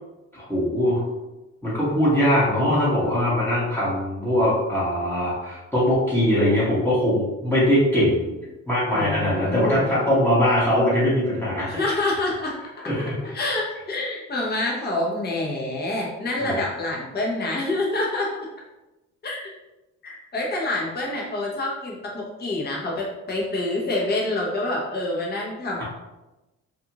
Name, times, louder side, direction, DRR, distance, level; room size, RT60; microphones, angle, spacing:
voice 1, 0.3-1.0 1.6-8.3 8.7-11.9 12.9-13.1 16.4-16.6 25.8-25.9, equal, 5° left, -9 dB, 1.1 m, -21 dB
voice 2, 8.9-9.9 11.7-12.9 13.2-18.3 19.2-19.5 20.0-25.8, left 2 dB, 35° left, -3 dB, 0.8 m, -27 dB
2.5 x 2.4 x 2.9 m, 1.0 s
cardioid pair, 90°, 30 cm